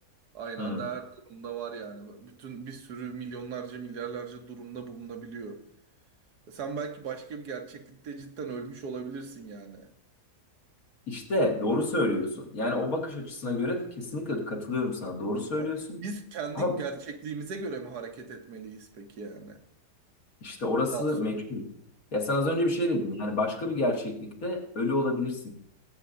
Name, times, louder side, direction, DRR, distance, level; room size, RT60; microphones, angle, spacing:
voice 1, 0.3-5.6 6.5-9.9 15.6-15.7 16.0-19.6 20.9-21.2, right 5 dB, 80° right, 4 dB, 1.7 m, -38 dB
voice 2, 11.1-16.0 16.6-16.7 20.4-21.6 22.1-25.5, left 2 dB, 60° left, 0 dB, 2.1 m, -29 dB
20.5 x 8.2 x 2.5 m, 0.71 s
omnidirectional pair, 1.7 m